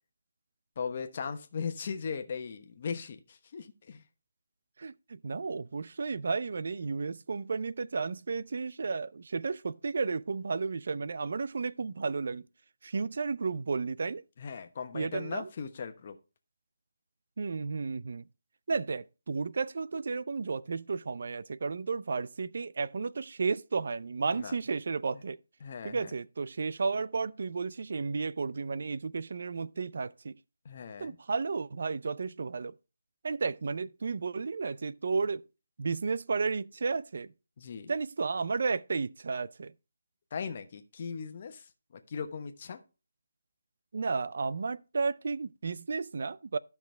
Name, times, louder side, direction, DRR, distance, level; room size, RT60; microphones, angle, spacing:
voice 1, 0.8-4.0 14.4-16.2 24.3-24.5 25.6-26.1 30.6-31.2 37.6-37.9 40.3-41.6 42.1-42.8, left 6 dB, 35° left, 1.1 m, -38 dB
voice 2, 4.8-12.4 12.8-14.2 14.9-15.5 17.4-18.2 18.7-25.4 25.8-30.4 31.0-32.7 33.2-35.5 35.8-37.3 37.9-39.7 43.9-46.6, right 4 dB, 55° right, 0.4 m, -33 dB
13.0 x 6.0 x 3.3 m
hypercardioid pair, 170°, 0 cm